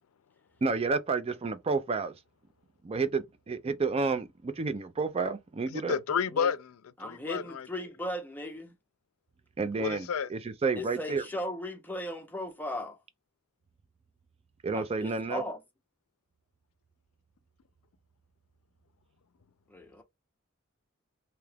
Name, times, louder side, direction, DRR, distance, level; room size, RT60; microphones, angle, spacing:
voice 1, 0.6-2.1 2.8-6.0 9.6-11.2 14.6-15.4, right 4 dB, 30° right, 0.4 m, -30 dB
voice 2, 5.7-7.7 9.7-10.3, left 6 dB, 90° left, 0.4 m, -31 dB
voice 3, 7.0-8.7 10.7-13.0 14.7-15.6 19.7-20.0, left 1 dB, 10° left, 0.7 m, -37 dB
2.9 x 2.3 x 3.3 m
head